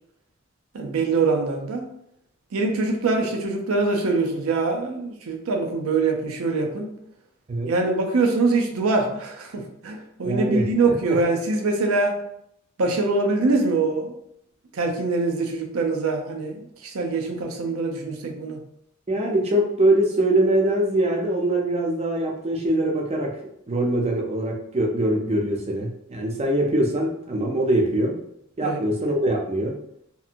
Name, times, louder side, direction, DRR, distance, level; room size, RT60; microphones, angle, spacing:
voice 1, 0.7-1.9 2.5-7.0 7.7-12.2 12.8-14.1 14.7-18.6 28.6-28.8, right 3 dB, 85° right, 3 dB, 0.5 m, -24 dB
voice 2, 10.2-10.6 19.1-23.3 23.7-28.2 28.6-29.7, right 1 dB, 30° right, 0 dB, 0.5 m, -23 dB
2.8 x 2.6 x 2.5 m, 0.75 s
head